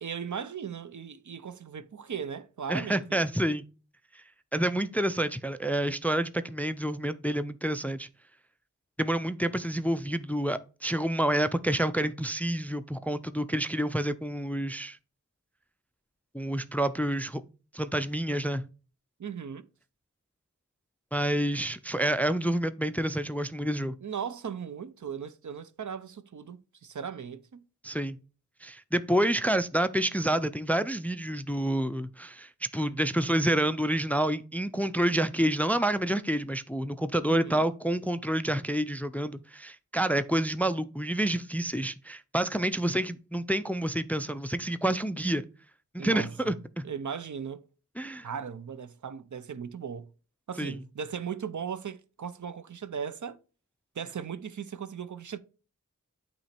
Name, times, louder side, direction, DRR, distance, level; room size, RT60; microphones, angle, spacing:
voice 1, 0.0-3.2 19.2-19.7 24.0-27.6 37.3-37.7 46.0-46.5 46.8-47.6 48.2-50.1 50.5-53.4 54.0-55.4, right 7 dB, 65° right, 0.6 m, -37 dB
voice 2, 2.7-3.6 4.5-8.1 9.0-15.0 16.3-17.4 17.7-18.6 21.1-23.9 27.8-28.2 28.6-45.4 45.9-46.9 48.0-48.3 50.6-50.8, right 1 dB, 5° left, 0.4 m, -28 dB
8.6 x 3.0 x 4.3 m
wide cardioid pair, 65°, 33 cm